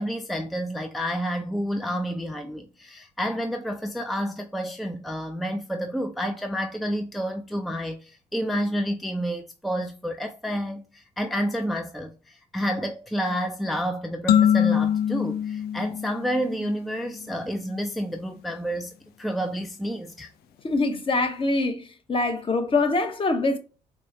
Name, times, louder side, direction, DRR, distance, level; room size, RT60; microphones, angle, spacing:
voice 1, 0.0-20.3, equal, ahead, 0.4 m, -29 dB
sound 1, 14.3-16.9, left 9 dB, 65° left, 0.4 m, -23 dB
voice 2, 20.6-21.8 22.1-23.6, left 3 dB, 30° left, 0.8 m, -24 dB
4.5 x 2.1 x 2.7 m
supercardioid pair, 65°, 17 cm